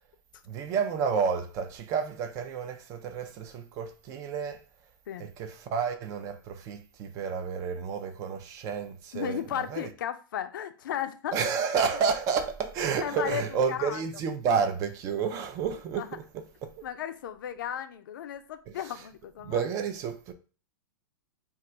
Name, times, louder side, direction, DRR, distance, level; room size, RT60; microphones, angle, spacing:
voice 1, 0.5-4.6 5.2-9.8 11.3-16.1 16.6-16.7 19.4-20.3, right 6 dB, 30° right, 0.4 m, -30 dB
voice 2, 9.1-11.4 13.0-14.0 16.0-16.2 16.8-19.7, left 9 dB, 80° left, 0.4 m, -35 dB
2.4 x 2.2 x 3.9 m
hypercardioid pair, 145°, 11 cm